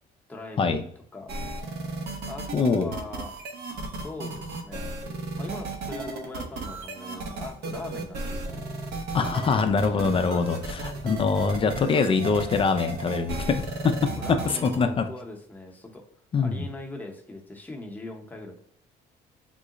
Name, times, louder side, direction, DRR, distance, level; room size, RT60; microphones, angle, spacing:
voice 1, 0.3-0.8 1.1-1.4 2.3-3.3 3.9-4.9 5.4-8.6 10.1-10.6 14.2-16.0 16.4-18.6, left 2 dB, 10° left, 0 dB, 0.7 m, -40 dB
sound 1, 1.3-14.8, right 2 dB, 70° right, 0.8 m, -34 dB
voice 2, 2.5-2.9 9.1-14.0 14.3-15.1 16.3-16.7, left 5 dB, 30° left, 8 dB, 0.4 m, -24 dB
3.8 x 2.0 x 3.6 m, 0.64 s
cardioid pair, 110°, 17 cm